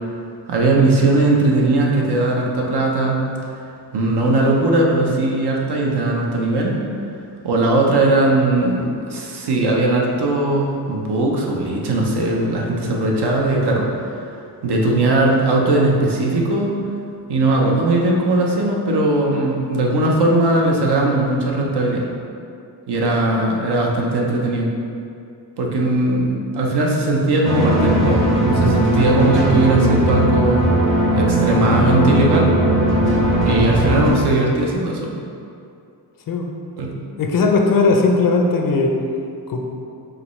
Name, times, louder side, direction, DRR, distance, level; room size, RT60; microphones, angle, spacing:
voice 1, 0.5-3.2 3.9-6.8 7.4-13.9 14.6-16.8 17.3-22.1 22.9-24.7 25.6-30.6 31.2-32.6 33.4-35.1 36.8-36.9, right 2 dB, 65° right, -1 dB, 0.8 m, -19 dB
sound 1, 27.4-34.1, right 1 dB, 30° right, 0.8 m, -17 dB
voice 2, 37.2-38.9 39.5-39.6, left 3 dB, 50° left, 1 dB, 0.5 m, -17 dB
4.9 x 3.1 x 3.1 m, 2.5 s
cardioid pair, 105°, 42 cm